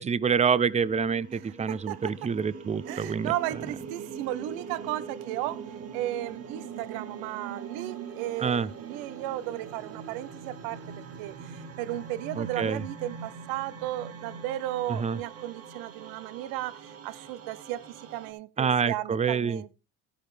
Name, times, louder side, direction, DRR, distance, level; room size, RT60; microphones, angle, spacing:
voice 1, 0.0-3.3 8.4-8.7 12.4-12.8 14.9-15.2 18.6-19.6, right 6 dB, 20° right, 0.5 m, -27 dB
sound 1, 0.6-18.3, right 6 dB, 40° right, 2.2 m, -42 dB
voice 2, 1.3-2.3 2.9-5.6 5.9-19.7, right 15 dB, 85° right, 0.8 m, -35 dB
12.0 x 10.5 x 3.3 m
cardioid pair, 105°, 35 cm